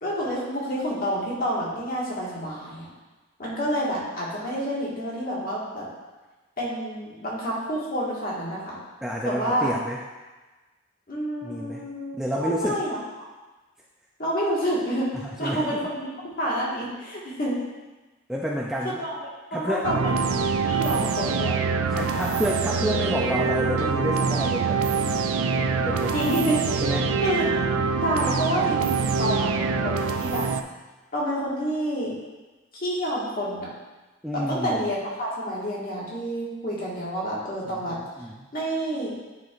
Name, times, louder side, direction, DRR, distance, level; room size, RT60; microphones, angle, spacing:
voice 1, 0.0-2.9 3.4-5.9 6.6-8.8 9.2-9.7 11.1-13.3 14.2-15.1 15.4-17.6 19.0-19.1 19.5-20.4 20.7-21.6 26.1-26.8 27.2-27.4 28.0-30.5 31.1-32.2 32.7-33.7 34.3-38.0 38.5-39.1, equal, 45° left, -6 dB, 1.8 m, -28 dB
voice 2, 9.0-10.0 11.4-11.8 12.2-12.8 15.2-15.8 18.3-19.0 19.5-19.9 20.8-20.9 21.9-25.0 25.8-26.1 26.8-27.1 34.2-34.8 37.9-38.5, equal, 5° right, -3 dB, 0.4 m, -29 dB
sound 1, 19.8-30.6, right 5 dB, 85° right, 0.4 m, -25 dB
9.6 x 4.6 x 2.5 m, 1.2 s
head